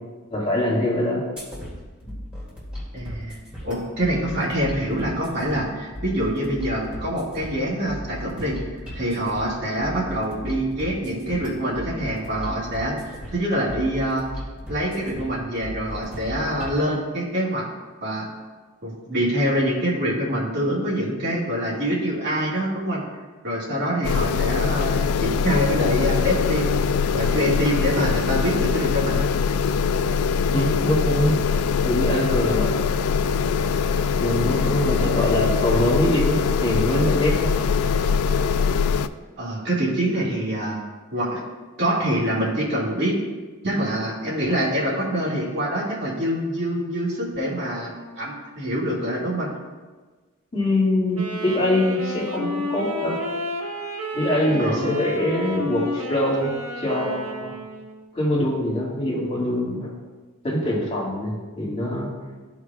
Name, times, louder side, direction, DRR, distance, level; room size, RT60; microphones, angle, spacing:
voice 1, 0.3-1.2 30.5-31.4 31.8-32.8 34.2-37.5 50.5-53.2 54.1-57.5 58.1-59.9 60.4-62.1, left 1 dB, 30° left, -5 dB, 2.2 m, -23 dB
sound 1, 1.4-16.8, equal, 5° right, 2.4 m, -37 dB
voice 2, 2.9-3.4 3.6-8.6 8.9-14.3 14.7-17.7 18.0-18.3 18.8-23.0 23.4-26.8 27.1-29.3 35.0-35.3 39.4-40.8 41.1-41.4 41.8-43.1 43.6-49.5 54.6-54.8, equal, 50° right, -6 dB, 2.1 m, -25 dB
sound 2, 24.0-39.1, left 6 dB, 75° left, 0.3 m, -22 dB
Wind instrument woodwind instrument, 51.1-58.1, left 1 dB, 75° right, 1.3 m, -31 dB
14.0 x 4.8 x 2.4 m, 1.3 s
head